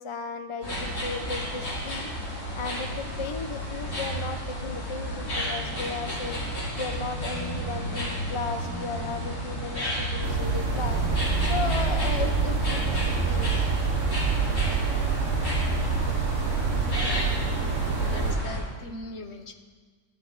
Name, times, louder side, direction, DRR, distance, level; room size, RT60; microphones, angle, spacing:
voice 1, 0.0-2.1 2.5-6.4 6.8-11.0 11.4-13.7 14.8-14.9, left 4 dB, 35° left, 7 dB, 0.5 m, -35 dB
sound 1, 0.6-18.6, left 1 dB, 85° left, 4.4 m, -31 dB
sound 2, 10.2-18.4, right 5 dB, 55° right, 1.3 m, -27 dB
voice 2, 16.9-17.5 18.0-19.5, left 2 dB, 50° left, 6 dB, 1.3 m, -40 dB
20.0 x 12.5 x 4.0 m, 1.5 s
omnidirectional pair, 1.6 m